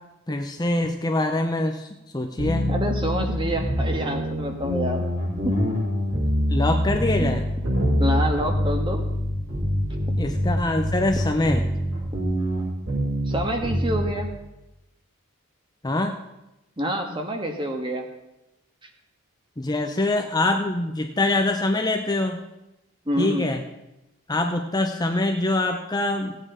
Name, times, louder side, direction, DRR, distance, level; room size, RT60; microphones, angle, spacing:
voice 1, 0.3-1.9 2.1-2.7 6.5-7.4 10.1-11.6 15.8-16.2 19.6-22.4 23.2-23.6 24.3-26.4, left 2 dB, 20° left, 4 dB, 0.7 m, -24 dB
sound 1, 2.4-14.2, equal, 60° right, 5.8 m, -25 dB
voice 2, 2.7-5.1 5.4-5.5 7.2-7.4 8.0-9.0 13.3-14.3 16.8-18.1 23.1-23.5, equal, 20° right, 4 dB, 1.5 m, -27 dB
16.5 x 8.8 x 5.0 m, 0.94 s
head